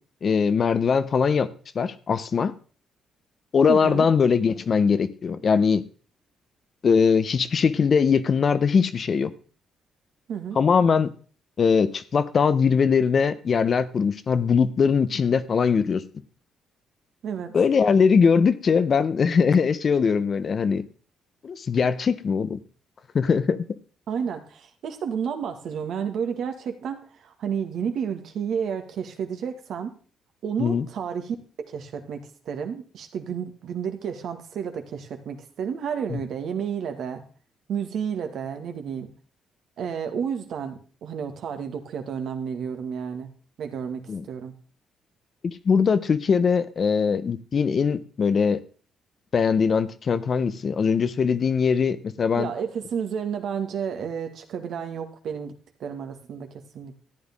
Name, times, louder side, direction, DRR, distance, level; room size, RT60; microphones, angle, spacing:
voice 1, 0.2-1.5 1.7-2.5 3.5-5.8 6.8-9.3 10.6-11.1 11.6-16.0 17.5-20.8 21.4-22.6 23.1-23.6 30.6-30.8 36.1-36.2 44.1-44.2 45.4-48.6 49.3-52.5, left 6 dB, 45° left, 13 dB, 0.9 m, -21 dB
voice 2, 3.7-4.1 10.3-10.6 17.2-17.6 24.1-29.9 30.4-31.4 31.7-37.2 37.7-39.1 39.8-43.3 43.6-44.5 52.4-55.5 55.8-56.9, right 7 dB, 70° right, 6 dB, 1.9 m, -31 dB
14.0 x 9.5 x 3.7 m, 0.40 s
cardioid pair, 90°, 0 cm